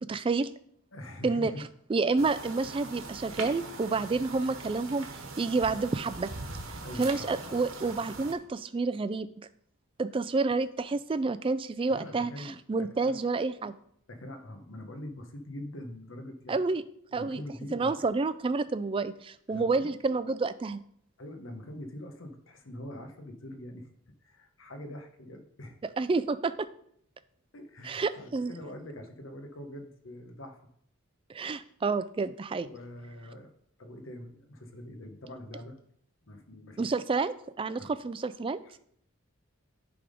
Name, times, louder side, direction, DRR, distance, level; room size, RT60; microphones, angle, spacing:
voice 1, 0.1-0.5 1.2-1.5 1.9-5.1 5.4-6.3 6.7-9.5 10.0-13.7 16.5-16.8 17.1-17.4 17.7-20.8 26.0-26.7 27.8-28.5 31.3-32.7 36.8-38.6, right 3 dB, 25° right, 14 dB, 0.3 m, -29 dB
voice 2, 0.9-1.7 6.8-7.7 11.9-13.3 14.1-16.6 17.1-18.1 19.5-19.9 21.2-23.9 24.2-25.8 27.5-30.6 31.6-31.7 32.6-33.5 33.8-35.8 36.2-37.0 37.8-37.9 38.6-38.7, left 1 dB, 65° left, 5 dB, 1.0 m, -44 dB
sound 1, 2.2-8.3, right 3 dB, 75° right, 1.2 m, -41 dB
10.0 x 3.6 x 5.2 m, 0.68 s
head